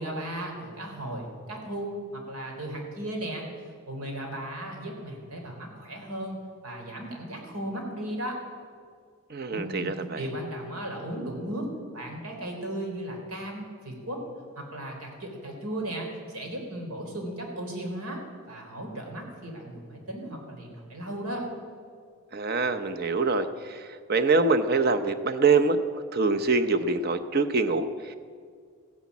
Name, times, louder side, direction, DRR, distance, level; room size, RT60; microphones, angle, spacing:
voice 1, 0.0-3.4 3.9-6.4 6.6-8.4 9.5-11.7 11.9-14.2 14.6-18.2 18.5-21.5, right 1 dB, 85° right, 1 dB, 3.5 m, -36 dB
voice 2, 9.3-10.2 22.3-25.8 26.1-28.1, right 3 dB, 45° right, 9 dB, 0.8 m, -25 dB
15.0 x 10.0 x 8.4 m, 2.1 s
head